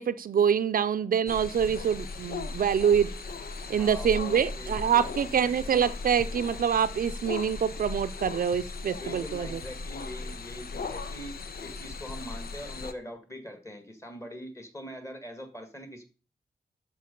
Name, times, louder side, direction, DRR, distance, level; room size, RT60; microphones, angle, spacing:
voice 1, 0.0-3.1 3.7-9.6, right 8 dB, 70° right, 11 dB, 0.5 m, -25 dB
sound 1, 1.3-12.9, left 4 dB, 85° left, 0.9 m, -38 dB
voice 2, 3.6-5.5 8.9-16.0, equal, 20° left, 7 dB, 1.8 m, -43 dB
12.5 x 4.7 x 5.2 m, 0.36 s
wide cardioid pair, 140°, 15 cm